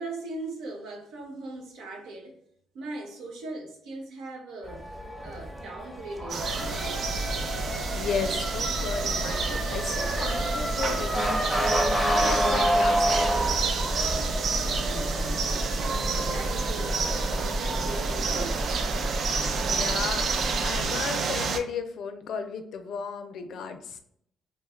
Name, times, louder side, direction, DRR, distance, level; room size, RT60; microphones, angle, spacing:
voice 1, 0.0-2.4 2.7-4.9 5.2-6.4 14.5-18.7, right 2 dB, 85° right, 0.7 m, -40 dB
Motor vehicle (road) / Siren, 4.6-18.2, equal, 5° right, 0.7 m, -30 dB
sound 1, 6.3-21.6, right 5 dB, 60° right, 0.3 m, -30 dB
sound 2, 6.4-20.9, equal, 45° right, 0.8 m, -33 dB
voice 2, 7.8-13.3 19.6-24.0, left 6 dB, 70° left, 0.4 m, -35 dB
2.6 x 2.3 x 3.3 m
cardioid pair, 90°, 0 cm